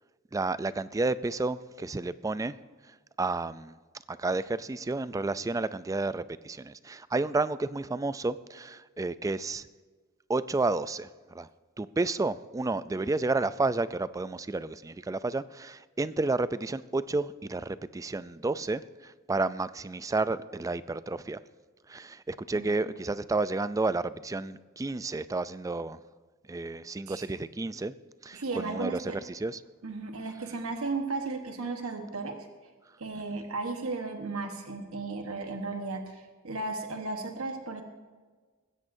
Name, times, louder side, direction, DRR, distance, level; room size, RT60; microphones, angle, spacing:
voice 1, 0.3-2.5 3.2-3.7 4.1-9.7 10.3-11.1 11.3-11.5 11.8-21.4 21.9-26.0 26.5-27.9 28.2-29.6 33.3-33.4, right 3 dB, 15° right, 15 dB, 0.3 m, -31 dB
voice 2, 28.3-29.2 29.8-32.5 33.0-37.8, right 3 dB, 85° right, 4 dB, 1.2 m, -35 dB
20.0 x 16.0 x 2.7 m, 1.4 s
head